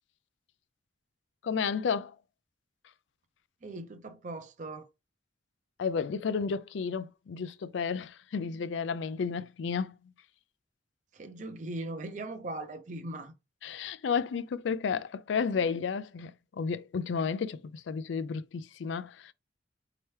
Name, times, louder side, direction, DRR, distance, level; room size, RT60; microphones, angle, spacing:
voice 1, 1.4-2.1 5.8-9.9 13.6-19.3, left 6 dB, 75° left, 0.4 m, -32 dB
voice 2, 3.6-4.9 11.1-13.3, right 2 dB, 40° right, 0.5 m, -39 dB
4.5 x 2.9 x 3.2 m
head